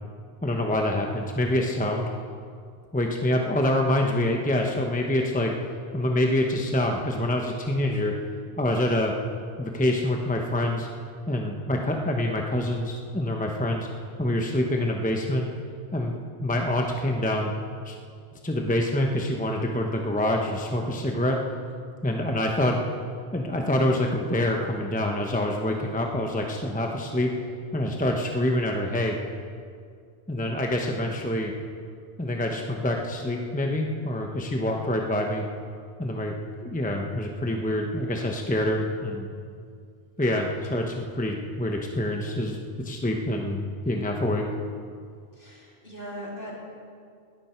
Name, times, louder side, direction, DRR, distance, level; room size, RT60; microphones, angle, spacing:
voice 1, 0.4-2.1 2.9-5.5 5.9-8.1 8.6-9.1 9.6-10.9 11.3-13.9 14.2-15.5 15.9-17.5 17.8-17.9 18.4-21.4 22.0-22.8 23.3-27.3 27.7-29.2 30.3-31.5 32.2-35.4 36.0-36.4 36.6-39.3 40.2-42.6 42.8-44.5, left 1 dB, 10° left, 1 dB, 1.0 m, -26 dB
voice 2, 45.3-46.6, equal, 55° left, -5 dB, 3.7 m, -39 dB
19.5 x 12.5 x 4.5 m, 2.2 s
omnidirectional pair, 1.1 m